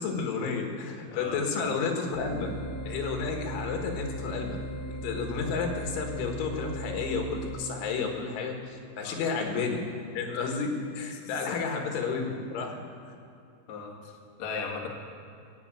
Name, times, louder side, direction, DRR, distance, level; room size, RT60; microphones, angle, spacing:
voice 1, 0.0-2.5 2.9-4.6 4.9-9.8 10.1-12.8, left 5 dB, 80° left, 3 dB, 3.9 m, -31 dB
voice 2, 1.0-1.4 9.0-9.2 11.1-11.6 12.7-12.8 13.7-14.1 14.4-14.9, left 5 dB, 55° left, -1 dB, 2.1 m, -38 dB
sound 1, 2.1-7.5, right 1 dB, 40° left, 1.9 m, -37 dB
16.0 x 7.9 x 8.9 m, 2.5 s
omnidirectional pair, 5.5 m